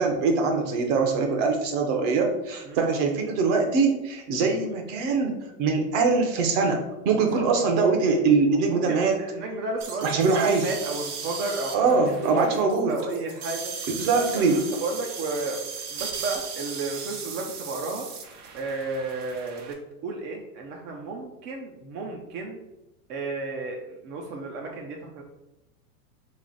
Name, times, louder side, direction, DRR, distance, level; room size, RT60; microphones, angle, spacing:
voice 1, 0.0-9.2 10.0-10.7 11.7-12.9 14.0-14.6, right 4 dB, 50° right, 3 dB, 1.0 m, -23 dB
voice 2, 7.2-7.8 8.7-13.7 14.1-15.6 15.9-18.1 18.5-22.6 23.1-25.2, right 3 dB, 30° right, 1 dB, 0.4 m, -33 dB
sound 1, 9.8-19.7, right 5 dB, 75° right, 1.1 m, -37 dB
3.2 x 3.2 x 3.9 m, 0.94 s
hypercardioid pair, 130°, 46 cm